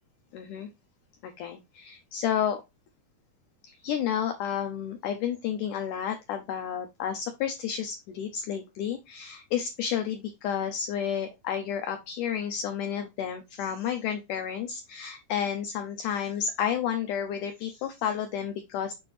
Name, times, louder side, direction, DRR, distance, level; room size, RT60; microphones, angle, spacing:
voice 1, 0.3-0.7 1.2-2.6 3.6-18.9, left 8 dB, 85° left, 7 dB, 1.8 m, -31 dB
7.0 x 4.3 x 3.2 m, 0.23 s
omnidirectional pair, 4.4 m